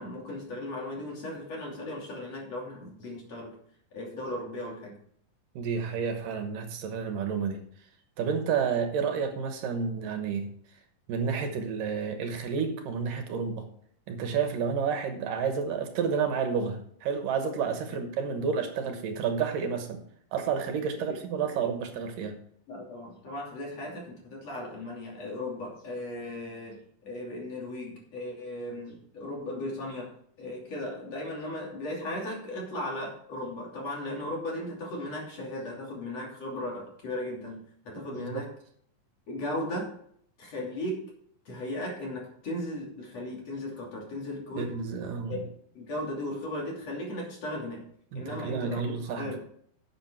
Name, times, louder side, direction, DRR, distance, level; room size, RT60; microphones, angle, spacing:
voice 1, 0.0-3.6 3.9-4.9 21.1-21.2 22.7-38.5 39.3-39.9 40.4-41.1 41.5-44.7 45.3-47.8 48.2-49.4, left 1 dB, 45° left, -2 dB, 3.9 m, -36 dB
voice 2, 5.6-7.6 8.2-10.5 11.1-13.7 14.1-20.0 20.3-22.3 38.1-38.3 44.6-45.4 48.1-49.4, right 6 dB, 75° right, 6 dB, 2.7 m, -30 dB
11.5 x 7.9 x 4.5 m, 0.64 s
omnidirectional pair, 4.1 m